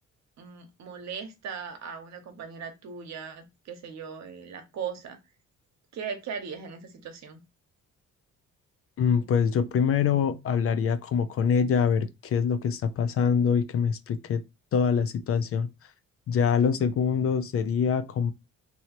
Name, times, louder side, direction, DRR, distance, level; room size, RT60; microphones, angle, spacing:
voice 1, 0.4-5.2 5.9-7.4, right 6 dB, 65° right, 0.9 m, -38 dB
voice 2, 9.0-14.4 14.7-15.7 16.3-18.3, left 7 dB, 50° left, 0.4 m, -24 dB
2.9 x 2.7 x 2.9 m
cardioid pair, 90°, 30 cm